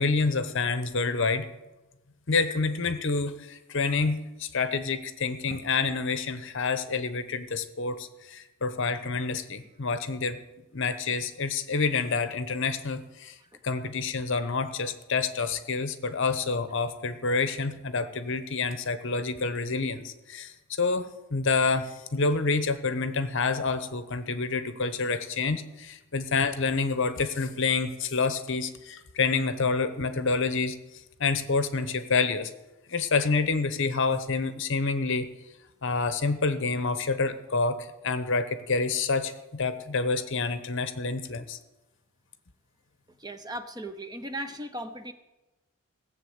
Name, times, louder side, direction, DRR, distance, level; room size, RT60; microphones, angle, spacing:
voice 1, 0.0-1.5 2.3-10.4 10.7-13.3 13.6-30.8 31.2-32.5 32.9-35.3 35.8-41.6, left 4 dB, 55° left, 11 dB, 0.9 m, -28 dB
voice 2, 43.2-45.1, right 1 dB, 20° right, 9 dB, 0.7 m, -37 dB
16.5 x 7.4 x 7.9 m, 1.1 s
head